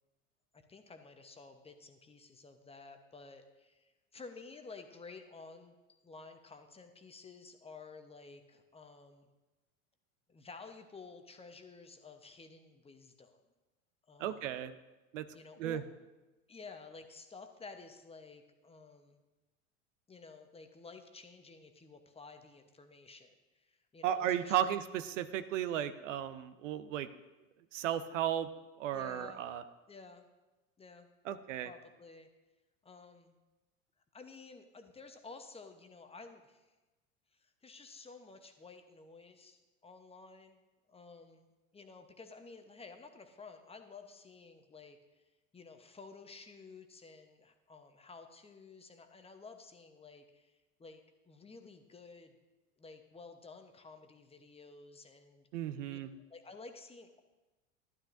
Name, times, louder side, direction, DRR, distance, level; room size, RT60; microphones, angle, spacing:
voice 1, 0.5-5.7 6.0-9.3 10.3-13.4 14.1-14.6 15.3-15.8 16.5-19.2 20.1-24.7 28.9-29.4 29.9-30.3 30.8-31.1 31.6-32.3 32.8-33.3 34.1-36.7 37.3-40.6 40.9-45.2 45.5-52.3 52.8-56.0 56.3-57.2, left 4 dB, 15° left, 6 dB, 0.9 m, -53 dB
voice 2, 14.2-14.7 15.1-15.3 15.6-15.8 24.0-27.1 27.7-28.5 28.8-29.6 31.3-31.7 55.5-56.1, right 11 dB, 70° right, 11 dB, 0.7 m, -34 dB
12.0 x 11.5 x 2.6 m, 1.1 s
hypercardioid pair, 85°, 39 cm